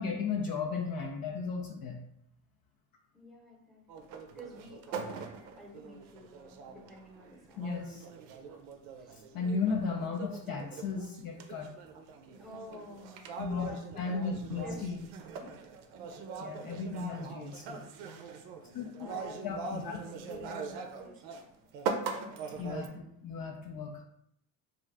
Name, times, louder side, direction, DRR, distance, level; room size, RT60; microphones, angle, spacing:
voice 1, 0.0-2.0 7.6-8.0 9.3-11.7 13.4-15.0 16.4-17.8 18.1-18.2 18.7-19.2 19.4-20.0 22.6-24.0, left 5 dB, 45° left, 1 dB, 0.5 m, -35 dB
voice 2, 3.1-5.3 5.6-7.8 9.0-9.2 12.4-14.3 14.6-14.9 15.3-15.7 19.0-21.5, equal, ahead, -2 dB, 0.8 m, -50 dB
sound 1, 3.9-21.4 21.7-22.9, right 5 dB, 80° right, 0.6 m, -42 dB
2.5 x 2.4 x 3.2 m, 0.74 s
hypercardioid pair, 60°, 50 cm